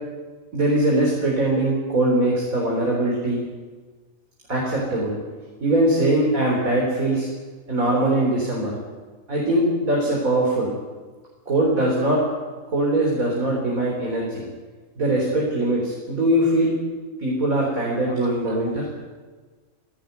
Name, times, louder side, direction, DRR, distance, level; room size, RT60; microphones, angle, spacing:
voice 1, 0.5-3.4 4.5-5.1 5.6-7.3 7.7-8.7 9.3-10.7 11.5-12.2 12.7-14.4 15.0-16.7 17.2-18.9, right 1 dB, 80° right, -3 dB, 4.4 m, -21 dB
voice 2, 18.1-18.9, right 1 dB, 50° right, 3 dB, 4.0 m, -39 dB
17.5 x 16.5 x 9.4 m, 1.4 s
omnidirectional pair, 1.4 m